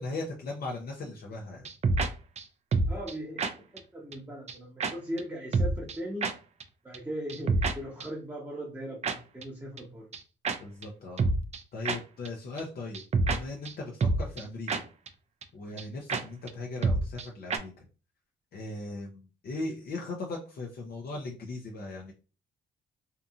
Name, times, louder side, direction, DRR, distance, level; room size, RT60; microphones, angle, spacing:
voice 1, 0.0-1.7 10.6-11.3 11.7-13.0 13.3-14.8 15.5-17.9 18.5-22.1, left 2 dB, 50° left, 0 dB, 0.6 m, -38 dB
sound 1, 1.7-2.1 2.4-2.5 2.7-3.1 3.4-3.5 3.8-3.9 4.1-4.2 4.5-4.6 4.8-4.9 5.2-5.3 5.5-6.0 6.2-6.3 6.6-6.7 6.9-7.0 7.3-7.7 8.0-8.1 9.0-9.2 9.4-9.5 9.8-9.9 10.1-10.2 10.5-10.6 10.8-10.9 11.2-11.6 11.9-12.0 12.3-12.4 12.6-12.7 12.9-13.4 13.7-13.8 14.0-14.4 14.7-14.8 15.1-15.2 15.4-15.5 15.8-15.9 16.1-16.2 16.5-16.6 16.8-17.3 17.5-17.6, right 3 dB, 35° right, 0.4 m, -27 dB
voice 2, 2.9-6.3 6.8-10.1, equal, 10° right, -3 dB, 0.8 m, -39 dB
2.7 x 2.5 x 2.4 m, 0.34 s
cardioid pair, 90°, 20 cm